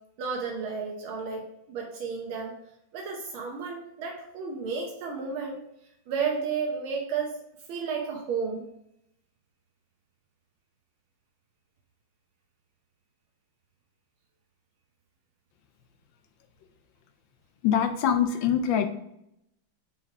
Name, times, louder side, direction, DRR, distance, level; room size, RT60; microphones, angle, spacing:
voice 1, 0.2-2.5 2.9-5.6 6.1-7.4 7.7-8.6, right 5 dB, 85° right, 1 dB, 1.8 m, -32 dB
voice 2, 17.6-18.9, left 8 dB, 75° left, 7 dB, 1.3 m, -23 dB
5.4 x 4.3 x 4.7 m, 0.78 s
omnidirectional pair, 2.2 m